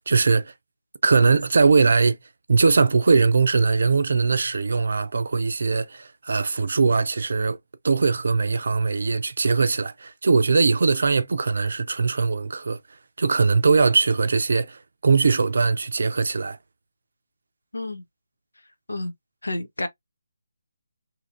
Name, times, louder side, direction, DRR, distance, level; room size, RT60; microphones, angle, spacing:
voice 1, 0.1-0.5 1.0-2.2 2.5-7.6 7.8-12.8 13.2-16.6, right 4 dB, 60° right, 0.4 m, -20 dB
voice 2, 17.7-18.0 18.9-19.1 19.4-19.9, left 2 dB, 80° left, 0.7 m, -29 dB
2.8 x 2.5 x 2.5 m
figure-of-eight pair, 150°, 0 cm